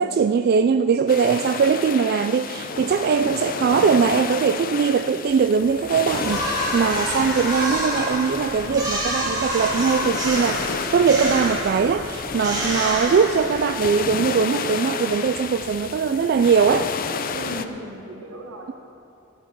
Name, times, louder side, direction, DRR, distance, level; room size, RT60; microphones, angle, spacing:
voice 1, 0.0-16.9, right 6 dB, 50° right, 8 dB, 0.3 m, -21 dB
sound 1, 1.1-17.7, left 5 dB, 45° left, 0.5 m, -31 dB
voice 2, 3.0-3.4 8.6-9.0 17.3-18.7, equal, 85° right, 2 dB, 1.6 m, -37 dB
sound 2, 6.1-13.8, equal, 20° right, 2.5 m, -28 dB
14.5 x 10.5 x 4.6 m, 2.9 s
head